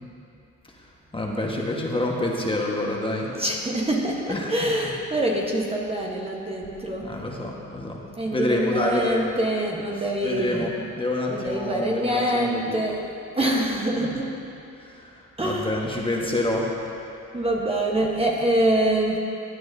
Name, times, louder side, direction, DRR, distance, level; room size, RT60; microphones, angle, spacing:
voice 1, 1.1-3.3 4.3-4.5 7.0-8.0 8.3-9.4 10.2-12.8 14.0-14.1 14.8-16.7, left 1 dB, 15° left, -2 dB, 1.4 m, -27 dB
voice 2, 3.3-7.1 8.2-10.7 11.3-13.0 13.4-14.4 15.4-15.9 17.3-19.2, right 1 dB, 20° right, -1 dB, 1.1 m, -25 dB
16.0 x 9.4 x 2.7 m, 2.6 s
cardioid pair, 90°, 30 cm